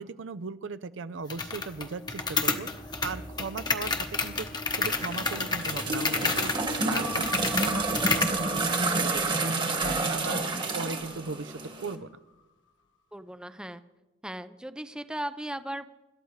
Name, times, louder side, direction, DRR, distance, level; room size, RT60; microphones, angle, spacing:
voice 1, 0.0-6.5 6.8-10.4 10.7-12.1, right 4 dB, 70° right, 14 dB, 0.5 m, -38 dB
sound 1, 1.3-8.4, left 4 dB, 20° left, 1.0 m, -30 dB
sound 2, 4.8-11.9, right 3 dB, 25° right, 1.3 m, -30 dB
sound 3, 6.9-11.6 12.0-12.1, right 1 dB, 70° left, 1.4 m, -40 dB
voice 2, 13.1-13.8 14.2-15.9, right 1 dB, 5° right, 11 dB, 0.5 m, -37 dB
26.0 x 12.5 x 3.2 m, 1.1 s
head